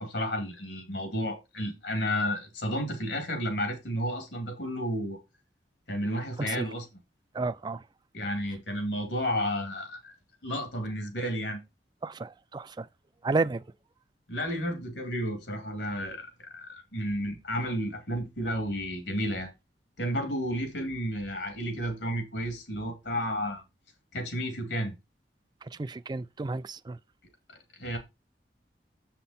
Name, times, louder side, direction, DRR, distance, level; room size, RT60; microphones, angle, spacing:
voice 1, 0.0-5.2 5.9-6.8 8.1-10.1 10.4-11.6 14.3-19.5 20.0-23.6 24.1-24.9 27.5-28.0, equal, 75° left, 2.7 m, -32 dB
voice 2, 7.3-7.9 12.0-12.9 13.2-13.7 20.2-20.3 25.6-27.0, right 3 dB, 25° right, 0.4 m, -32 dB
7.4 x 5.8 x 4.2 m
head